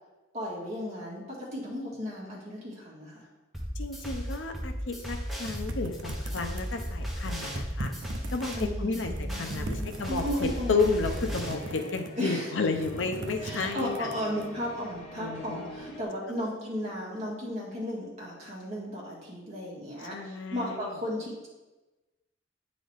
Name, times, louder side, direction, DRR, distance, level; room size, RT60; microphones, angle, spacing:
voice 1, 0.3-1.2 1.5-3.3 8.5-10.8 12.2-12.5 13.4-21.5, equal, 35° right, -5 dB, 2.1 m, -35 dB
sound 1, 3.5-11.5, equal, ahead, 1.1 m, -35 dB
voice 2, 3.8-7.9 8.3-14.1 15.2-15.7 16.3-16.4 20.1-21.0, left 4 dB, 75° left, 6 dB, 0.6 m, -32 dB
sound 2, 5.4-6.8 7.2-8.6 9.0-10.4 10.9-12.3 12.6-14.5, right 2 dB, 70° right, 0.6 m, -40 dB
sound 3, 10.0-16.0, equal, 35° left, 0.9 m, -45 dB
8.8 x 3.9 x 3.4 m, 1.1 s
head